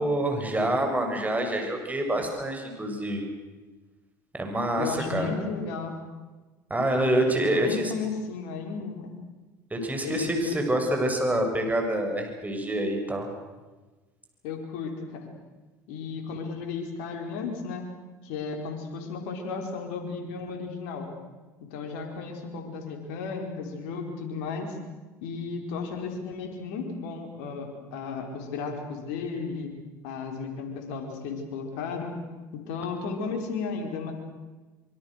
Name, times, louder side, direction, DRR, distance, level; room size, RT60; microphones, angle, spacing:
voice 1, 0.0-3.3 4.3-5.3 6.7-7.8 9.7-13.3, right 1 dB, 15° right, 3 dB, 7.2 m, -26 dB
voice 2, 4.7-6.0 6.9-9.1 10.0-10.6 14.4-15.3 15.9-17.9 18.2-21.1 21.7-24.8 25.2-29.7 30.0-32.2 32.5-34.1, left 4 dB, 75° left, 4 dB, 4.8 m, -34 dB
25.5 x 24.0 x 6.7 m, 1.2 s
hypercardioid pair, 70°, 10 cm